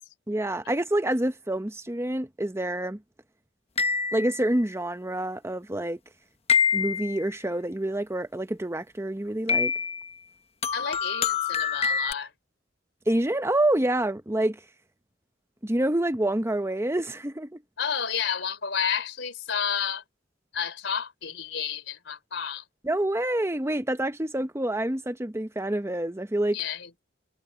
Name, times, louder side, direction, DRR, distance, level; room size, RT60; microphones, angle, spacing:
voice 1, 0.3-3.0 4.1-6.0 6.7-9.7 13.1-14.6 15.6-17.6 22.8-26.6, right 1 dB, 15° right, 0.9 m, -27 dB
sound 1, 3.8-4.6 6.5-7.2 9.5-10.1 10.6-12.1, left 6 dB, 30° left, 1.0 m, -26 dB
voice 2, 10.7-12.3 17.8-20.0 20.5-22.6 26.5-27.0, left 7 dB, 65° left, 4.6 m, -31 dB
head